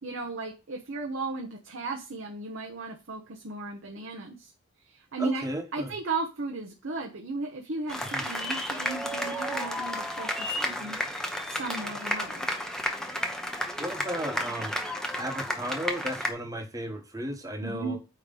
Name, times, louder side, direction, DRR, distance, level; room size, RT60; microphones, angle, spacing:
voice 1, 0.0-4.5 4.8-5.5 5.7-11.0 11.4-12.6 17.6-18.0, right 3 dB, 80° right, 0 dB, 1.1 m, -36 dB
voice 2, 5.2-5.9 8.1-8.2 13.8-14.7 15.2-18.0, equal, 15° right, 3 dB, 1.3 m, -34 dB
sound 1, 7.9-16.3, equal, 5° left, 0.9 m, -32 dB
8.8 x 3.3 x 5.4 m, 0.29 s
head